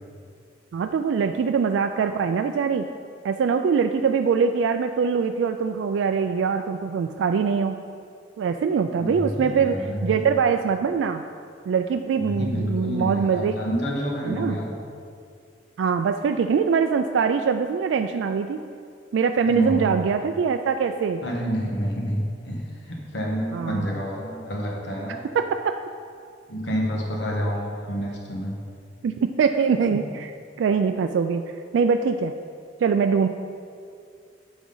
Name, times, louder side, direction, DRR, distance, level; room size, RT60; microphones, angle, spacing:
voice 1, 0.7-2.9 3.2-7.8 8.4-11.2 11.7-13.5 14.2-14.6 15.8-18.6 19.1-21.2 23.5-23.9 25.3-25.8 29.0-30.3 30.6-31.4 31.7-32.3 32.8-33.3, right 6 dB, 80° right, 7 dB, 0.3 m, -23 dB
voice 2, 8.9-10.2 12.2-14.7 19.5-19.9 21.2-25.2 26.5-28.5, equal, 70° left, -2 dB, 1.4 m, -28 dB
9.4 x 6.1 x 3.9 m, 2.3 s
head